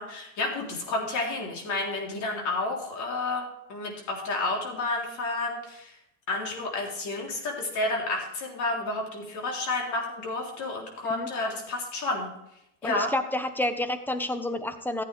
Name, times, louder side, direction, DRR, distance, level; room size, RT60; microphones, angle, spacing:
voice 1, 0.0-5.9 6.3-12.3 12.8-13.1, left 2 dB, 50° left, 0 dB, 3.7 m, -30 dB
voice 2, 12.8-15.0, left 1 dB, 5° left, 9 dB, 1.1 m, -29 dB
14.5 x 8.7 x 3.4 m, 0.81 s
hypercardioid pair, 80°, 37 cm